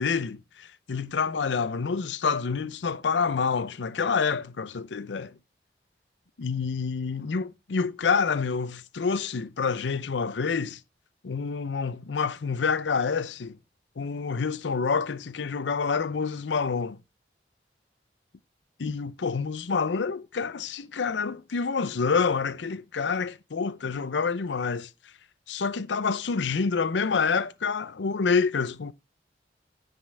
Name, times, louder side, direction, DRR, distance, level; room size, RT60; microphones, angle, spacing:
voice 1, 0.0-5.3 6.4-10.8 11.2-13.6 14.0-17.0 18.8-24.9 25.5-28.9, left 5 dB, 85° left, 0.6 m, -27 dB
15.0 x 5.4 x 3.4 m
head